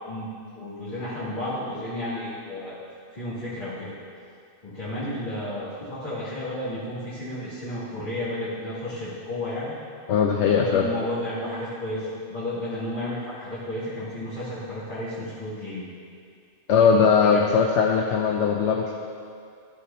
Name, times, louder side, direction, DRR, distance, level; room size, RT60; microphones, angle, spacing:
voice 1, 0.5-2.8 3.1-3.9 4.6-9.8 10.5-15.9 16.8-17.5, left 1 dB, 40° left, -15 dB, 2.8 m, -32 dB
voice 2, 10.1-10.9 16.7-18.9, left 6 dB, 85° left, 1 dB, 0.9 m, -20 dB
13.0 x 8.3 x 2.9 m, 2.4 s
omnidirectional pair, 1.2 m